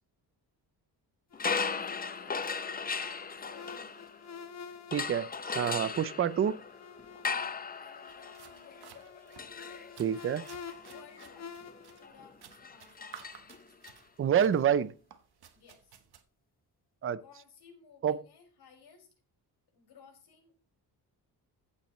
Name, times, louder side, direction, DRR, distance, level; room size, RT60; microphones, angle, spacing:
sound 1, 1.3-12.1, left 6 dB, 40° left, 1.1 m, -50 dB
sound 2, 1.3-4.4 4.9-13.9, left 5 dB, 25° left, 0.7 m, -38 dB
voice 1, 1.6-4.0 7.8-9.1 10.8-11.6 12.0-13.7 15.5-16.0 17.2-19.1 19.7-20.5, left 6 dB, 75° left, 5.8 m, -58 dB
voice 2, 4.9-6.6 10.0-10.4 14.2-14.9 17.0-17.2 18.0-18.2, right 8 dB, 35° right, 0.5 m, -27 dB
sound 3, 8.1-16.2, right 9 dB, 70° right, 1.3 m, -56 dB
15.0 x 8.3 x 3.1 m
cardioid pair, 140°, 39 cm